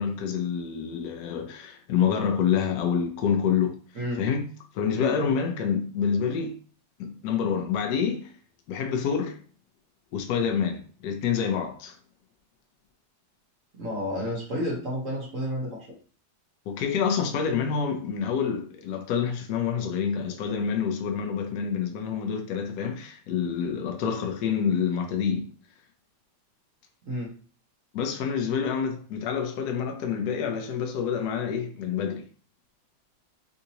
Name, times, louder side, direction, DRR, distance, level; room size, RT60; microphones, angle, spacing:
voice 1, 0.0-3.8 4.2-4.4 4.7-6.6 7.0-8.3 8.7-9.4 10.1-11.9 16.7-25.5 27.9-32.2, left 7 dB, 75° left, 0.9 m, -27 dB
voice 2, 13.8-15.9 27.0-27.3, equal, 55° right, 1.0 m, -31 dB
3.7 x 2.7 x 2.8 m
omnidirectional pair, 2.2 m